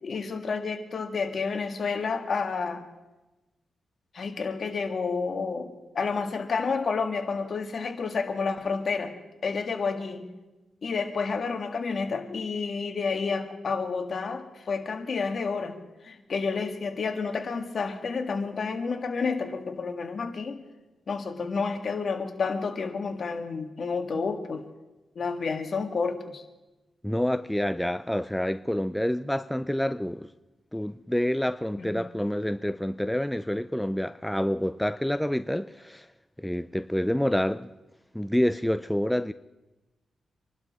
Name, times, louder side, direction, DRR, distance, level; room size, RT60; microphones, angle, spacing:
voice 1, 0.0-2.8 4.1-9.1 9.4-10.3 10.8-15.8 16.0-20.6 21.1-24.6 25.2-26.4 31.8-31.9, left 4 dB, 55° left, 1.8 m, -30 dB
voice 2, 27.0-30.3 30.7-36.1 36.4-37.7 38.1-39.3, equal, 5° left, 0.4 m, -28 dB
26.5 x 12.0 x 3.7 m
cardioid pair, 100°, 0 cm